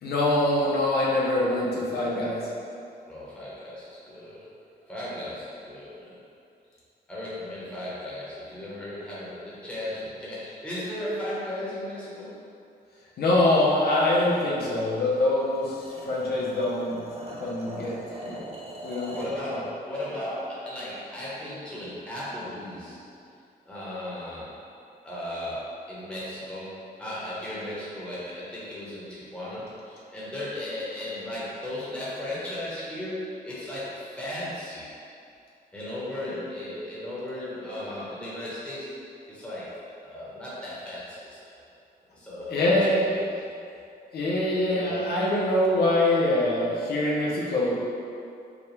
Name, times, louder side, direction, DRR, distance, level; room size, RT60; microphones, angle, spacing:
voice 1, 0.0-2.4 13.2-17.0 17.3-18.4 18.8-19.2 19.5-19.6 42.5-43.0 44.1-47.7, left 1 dB, 75° left, -5 dB, 0.7 m, -24 dB
voice 2, 3.1-4.5 4.9-6.2 7.1-12.3 19.1-23.1 23.6-24.6 25.0-34.9 35.7-41.5 42.1-43.2 44.7-45.0, left 1 dB, 5° left, -9 dB, 1.0 m, -36 dB
sound 1, 15.0-19.4, right 1 dB, 40° right, 0.6 m, -42 dB
5.1 x 2.3 x 3.3 m, 2.5 s
wide cardioid pair, 140°, 16 cm